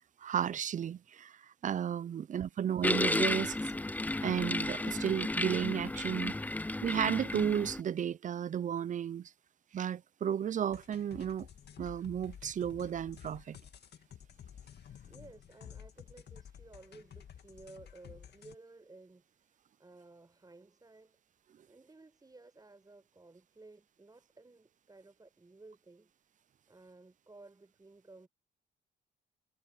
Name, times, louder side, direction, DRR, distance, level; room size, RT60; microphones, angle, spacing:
voice 1, 0.2-1.3 1.6-3.6 4.2-6.3 6.8-9.3 9.7-11.5 11.8-13.6, right 9 dB, 40° right, 0.5 m, -33 dB
sound 1, 2.8-7.8, left 2 dB, 10° left, 0.5 m, -33 dB
sound 2, 10.7-18.6, left 9 dB, 55° left, 2.0 m, -52 dB
voice 2, 15.1-21.2 21.7-26.1 26.7-28.3, right 3 dB, 20° right, 5.5 m, -56 dB
cardioid pair, 90°, 20 cm